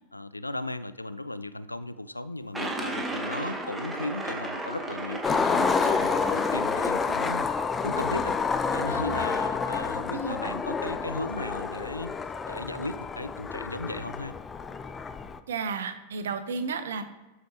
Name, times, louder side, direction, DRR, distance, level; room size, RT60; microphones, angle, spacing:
voice 1, 0.1-7.4 7.8-8.4 8.7-12.1 12.5-14.3, left 2 dB, 85° left, 14 dB, 0.4 m, -36 dB
sound 1, 2.5-7.5, right 2 dB, 5° right, 1.2 m, -35 dB
Skateboard, 5.2-15.4, left 5 dB, 20° left, 0.4 m, -29 dB
voice 2, 10.1-10.6 15.5-17.0, right 5 dB, 65° right, 10 dB, 0.8 m, -33 dB
12.5 x 5.0 x 2.9 m, 1.1 s
figure-of-eight pair, 90°, 0 cm